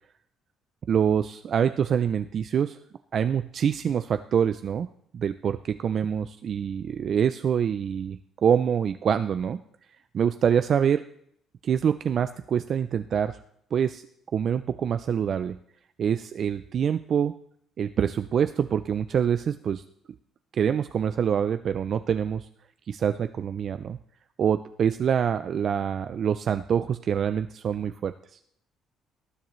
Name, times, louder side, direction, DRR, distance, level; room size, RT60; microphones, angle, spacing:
voice 1, 0.9-2.8 3.1-4.9 5.1-9.6 10.1-11.0 11.6-13.4 13.7-14.0 14.3-15.6 16.0-17.3 17.8-19.8 20.5-22.5 22.9-24.0 24.4-28.1, right 8 dB, 45° right, 10 dB, 0.4 m, -25 dB
19.0 x 10.5 x 3.1 m, 0.68 s
cardioid pair, 150°, 0 cm